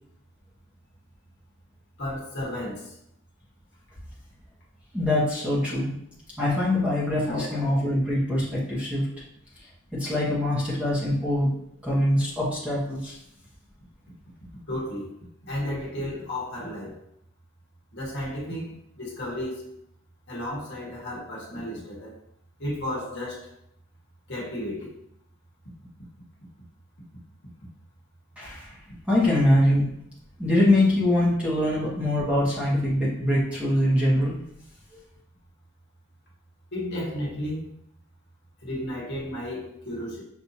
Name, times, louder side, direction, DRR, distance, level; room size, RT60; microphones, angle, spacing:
voice 1, 2.0-2.9 7.2-7.7 14.7-15.1 15.4-17.0 17.9-19.7 20.3-22.1 22.6-23.5 24.3-24.9 36.7-37.7 38.6-40.2, left 1 dB, 50° left, -4 dB, 1.2 m, -33 dB
voice 2, 4.9-5.9 6.4-9.1 10.0-11.5 11.8-13.2 28.4-28.7 29.1-29.9 30.4-34.4, left 1 dB, 5° right, -7 dB, 1.0 m, -23 dB
6.0 x 2.6 x 2.7 m, 0.74 s
head